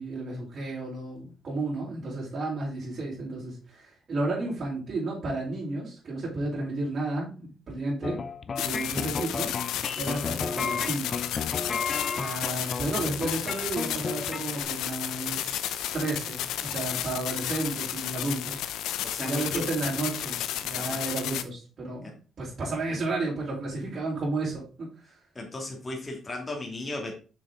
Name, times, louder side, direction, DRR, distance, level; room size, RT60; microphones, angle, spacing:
voice 1, 0.0-8.2 8.6-9.5 10.0-11.2 12.1-18.6 19.2-24.6, right 2 dB, 50° right, -6 dB, 4.3 m, -32 dB
sound 1, 8.0-14.6, left 5 dB, 40° left, 0.6 m, -33 dB
sound 2, 8.6-21.4, left 11 dB, 90° left, 0.6 m, -33 dB
voice 2, 19.0-19.7 20.7-21.0 22.0-22.1 25.3-27.1, left 2 dB, 20° left, 0 dB, 2.4 m, -36 dB
6.4 x 6.4 x 3.9 m, 0.35 s
cardioid pair, 90°, 0 cm